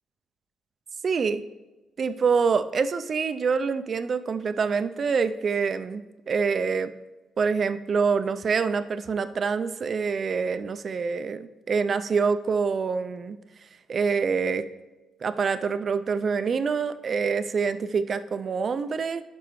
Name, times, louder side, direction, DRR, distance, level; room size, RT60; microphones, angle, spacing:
voice 1, 1.0-1.4 2.0-6.9 7.4-13.4 13.9-14.6 15.2-19.2, right 5 dB, 45° right, 12 dB, 0.4 m, -26 dB
12.0 x 4.5 x 3.1 m, 1.1 s
cardioid pair, 90°, 0 cm